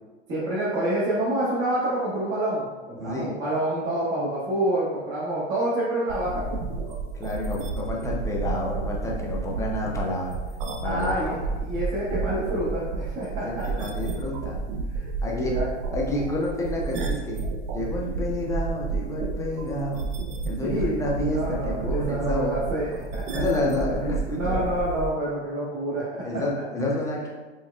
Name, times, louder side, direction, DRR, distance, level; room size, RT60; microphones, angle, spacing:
voice 1, 0.3-6.6 10.8-11.3 11.6-13.8 14.9-15.7 20.6-23.6 24.4-26.2, right 1 dB, 35° right, -9 dB, 1.2 m, -28 dB
voice 2, 3.0-3.3 7.1-10.3 10.8-11.4 13.3-14.6 15.2-15.6 15.9-17.4 17.7-20.1 20.5-22.6 23.3-24.7 26.2-27.3, left 1 dB, 10° left, -3 dB, 0.5 m, -29 dB
sound 1, 6.1-25.1, right 4 dB, 60° right, 0.6 m, -31 dB
4.6 x 2.3 x 2.2 m, 1.2 s
hypercardioid pair, 110°, 34 cm